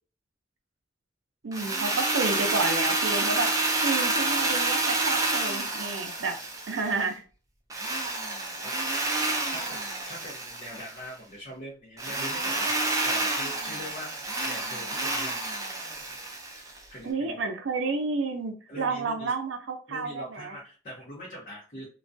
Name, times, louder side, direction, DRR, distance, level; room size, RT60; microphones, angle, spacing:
voice 1, 1.4-6.3 6.7-7.2 17.0-20.6, right 3 dB, 85° right, 5 dB, 0.5 m, -31 dB
Drill, 1.5-7.1 7.7-11.0 12.0-16.8, right 2 dB, 20° right, 0.4 m, -29 dB
voice 2, 9.5-12.7 13.0-15.4 16.9-17.4 18.7-19.3 19.9-21.9, equal, 45° left, -5 dB, 0.7 m, -42 dB
2.3 x 2.2 x 2.5 m, 0.38 s
head